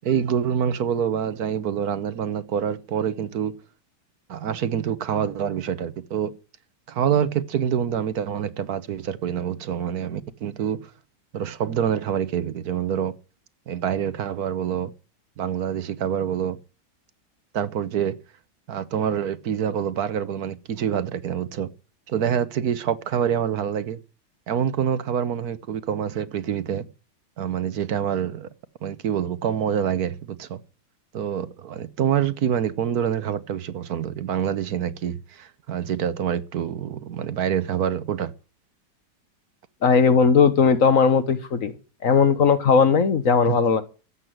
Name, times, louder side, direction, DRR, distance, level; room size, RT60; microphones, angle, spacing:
voice 1, 0.0-3.5 4.3-6.3 6.9-10.8 11.3-13.1 13.7-14.9 15.4-16.6 17.5-18.2 18.7-21.7 22.1-24.0 24.5-26.9 27.4-28.5 28.8-30.6 31.1-38.3 43.5-43.6, right 8 dB, 60° right, 1.4 m, -26 dB
voice 2, 39.8-41.7 42.0-43.8, left 5 dB, 55° left, 1.5 m, -18 dB
13.5 x 8.2 x 9.3 m
omnidirectional pair, 1.9 m